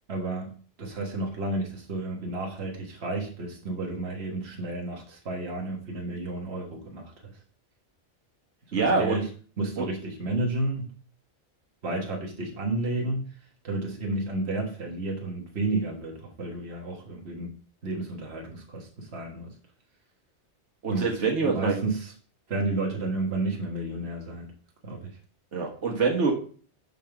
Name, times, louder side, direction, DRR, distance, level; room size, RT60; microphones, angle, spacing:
voice 1, 0.1-0.5 0.8-7.3 8.7-9.3 9.6-10.9 11.8-13.3 13.6-17.5 17.8-19.5 20.9-21.1 21.4-22.1 22.5-24.5 24.8-25.2, right 2 dB, 65° right, 1 dB, 1.8 m, -31 dB
voice 2, 8.7-9.2 9.8-9.9 20.8-21.8 25.5-26.3, right 4 dB, 80° right, 0 dB, 1.8 m, -25 dB
5.9 x 5.4 x 5.9 m, 0.43 s
omnidirectional pair, 1.2 m